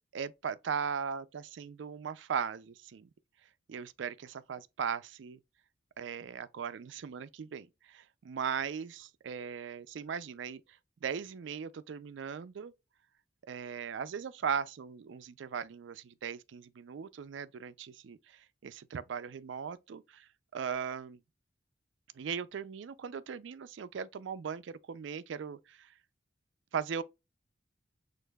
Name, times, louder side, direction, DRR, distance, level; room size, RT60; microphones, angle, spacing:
voice 1, 0.1-3.1 3.7-5.4 6.0-10.6 11.0-12.7 13.5-20.3 20.5-21.2 22.2-25.9 26.7-27.0, right 7 dB, 70° right, 0.4 m, -38 dB
6.5 x 2.5 x 2.2 m
head